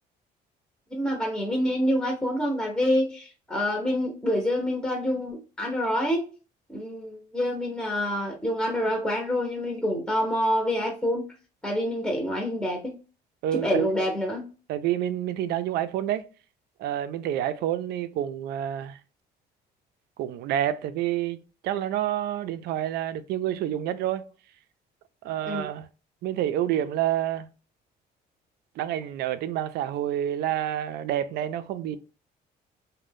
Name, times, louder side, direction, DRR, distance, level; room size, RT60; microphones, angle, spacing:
voice 1, 0.9-6.3 6.7-11.2 11.6-12.9 13.5-14.4 25.5-25.7, equal, 5° left, 0.7 m, -27 dB
voice 2, 13.4-13.9 14.7-16.3 16.8-19.0 20.2-24.3 25.2-25.9 26.2-27.5 28.8-32.0, right 11 dB, 70° right, 0.4 m, -28 dB
2.6 x 2.1 x 3.3 m
cardioid pair, 110°, 17 cm